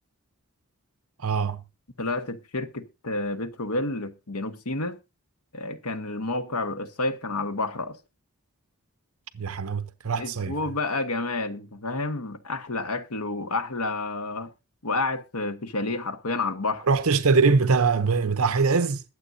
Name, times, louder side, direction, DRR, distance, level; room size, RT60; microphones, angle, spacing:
voice 1, 1.2-1.6 9.3-10.6 16.9-19.0, right 4 dB, 75° right, 0.8 m, -22 dB
voice 2, 2.0-5.0 5.5-8.0 10.2-14.5 14.8-16.9, left 2 dB, 85° left, 1.4 m, -30 dB
21.5 x 7.7 x 2.7 m
head